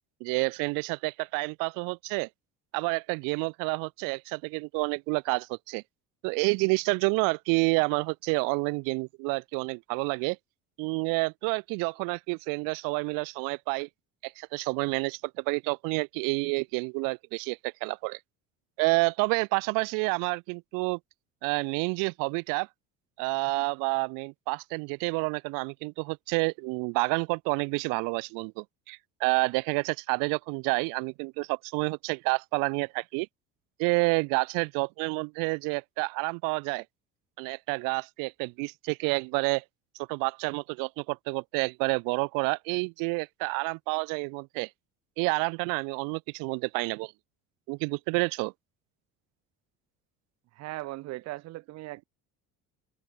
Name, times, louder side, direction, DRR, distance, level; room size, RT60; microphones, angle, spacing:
voice 1, 0.2-2.3 2.7-5.8 6.2-10.4 10.8-13.9 14.2-18.2 18.8-21.0 21.4-22.7 23.2-33.3 33.8-36.8 37.4-39.6 40.0-44.7 45.2-47.1 47.7-48.5, right 33 dB, 85° right, 0.5 m, -29 dB
voice 2, 50.6-52.0, right 18 dB, 55° right, 0.9 m, -38 dB
open air
cardioid pair, 155°, 32 cm